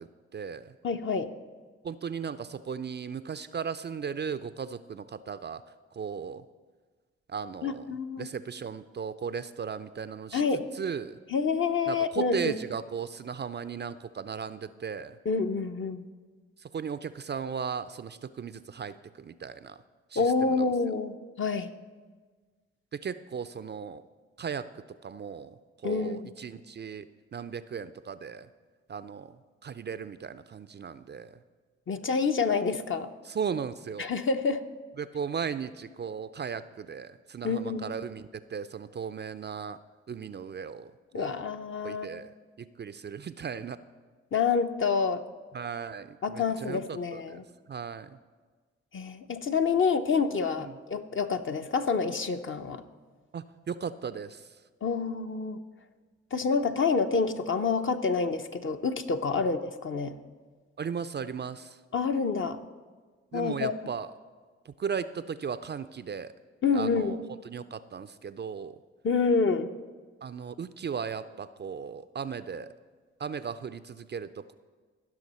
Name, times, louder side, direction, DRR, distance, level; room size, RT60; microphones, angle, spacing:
voice 1, 0.0-0.7 1.8-5.6 5.9-6.4 7.3-7.8 8.2-10.4 10.7-11.2 11.9-15.2 16.6-19.8 20.1-20.6 22.9-24.0 24.4-24.7 25.0-25.6 25.8-27.1 27.3-28.5 28.9-31.4 33.3-34.1 35.0-39.8 40.1-41.4 41.8-42.3 42.6-43.8 45.5-47.4 47.7-48.2 50.6-50.8 53.3-54.5 59.3-59.4 60.8-61.8 63.3-64.1 64.7-66.3 66.7-68.8 70.2-72.7 73.2-74.5, right 6 dB, 35° right, 13 dB, 0.4 m, -36 dB
voice 2, 0.8-1.3 7.6-8.3 10.3-10.7 11.3-12.5 15.2-16.0 20.2-21.7 25.8-26.3 31.9-33.1 34.0-34.6 37.4-37.9 41.1-42.2 44.3-45.2 46.2-47.4 48.9-52.8 54.8-55.6 56.3-60.2 61.9-62.6 63.3-63.7 66.6-67.2 69.0-69.7, left 5 dB, 45° left, 7 dB, 0.7 m, -28 dB
15.5 x 6.1 x 4.2 m, 1.4 s
supercardioid pair, 40°, 29 cm